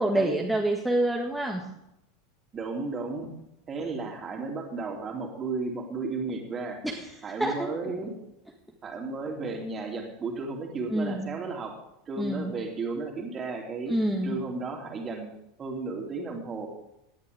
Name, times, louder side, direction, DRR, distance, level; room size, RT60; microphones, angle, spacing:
voice 1, 0.0-1.6 6.8-7.7 10.9-11.3 12.2-12.5 13.9-14.4, right 1 dB, ahead, -2 dB, 1.6 m, -27 dB
voice 2, 2.5-3.3 3.7-6.8 7.2-8.1 8.8-11.7 12.1-13.9 14.2-15.3 15.6-16.7, right 4 dB, 25° right, 1 dB, 3.0 m, -34 dB
18.0 x 10.5 x 3.7 m, 0.82 s
figure-of-eight pair, 80°, 0 cm